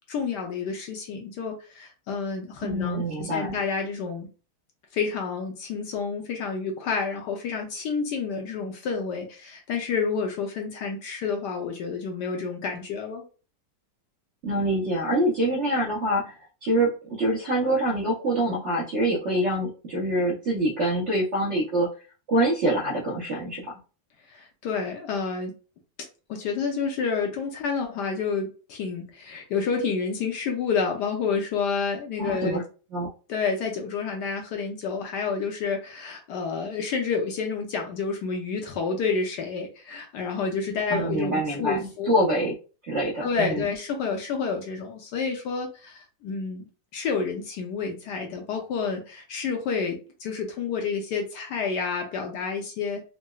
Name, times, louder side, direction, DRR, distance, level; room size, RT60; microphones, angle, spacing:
voice 1, 0.1-4.3 4.9-13.2 24.3-25.5 26.3-32.6 33.3-42.2 43.2-46.6 46.9-53.0, left 5 dB, 70° left, 2 dB, 1.1 m, -29 dB
voice 2, 2.6-3.5 14.4-21.9 22.3-23.6 32.2-32.6 32.9-33.1 40.9-42.5 42.8-43.7, right 1 dB, 60° right, -3 dB, 0.7 m, -25 dB
3.8 x 2.1 x 2.3 m, 0.35 s
omnidirectional pair, 2.1 m